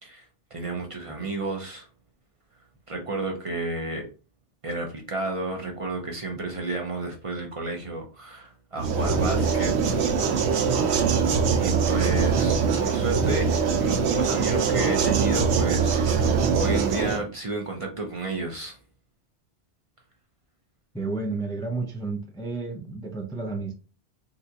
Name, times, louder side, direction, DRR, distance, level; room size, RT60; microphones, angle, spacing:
voice 1, 0.0-1.9 2.9-4.1 4.6-10.1 10.7-11.0 11.6-13.5 13.8-18.8, right 2 dB, 40° right, 0.6 m, -32 dB
sound 1, 8.8-17.2, right 5 dB, 85° right, 0.9 m, -23 dB
voice 2, 20.9-23.7, right 3 dB, 5° left, 0.3 m, -31 dB
3.8 x 2.3 x 2.7 m
omnidirectional pair, 1.1 m